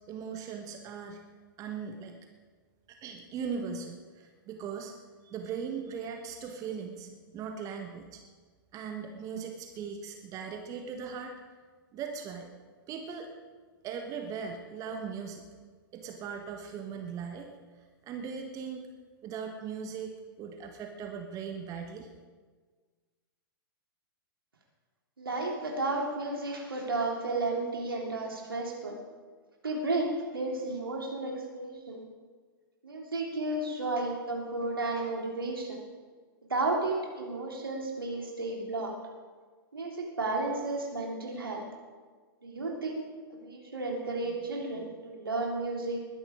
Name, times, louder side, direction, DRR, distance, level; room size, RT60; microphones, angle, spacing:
voice 1, 0.1-1.2 1.6-2.2 2.9-4.9 5.2-8.2 8.7-11.4 11.9-12.5 12.9-13.3 13.8-15.5 15.9-17.5 18.0-18.9 19.2-22.1, right 6 dB, 30° right, 4 dB, 1.4 m, -39 dB
voice 2, 25.2-28.9 29.6-32.0 32.8-35.8 36.5-38.9 39.7-41.6 42.4-43.0 43.4-46.0, right 2 dB, 75° right, -1 dB, 3.4 m, -33 dB
21.0 x 11.0 x 5.1 m, 1.5 s
figure-of-eight pair, 100°, 12 cm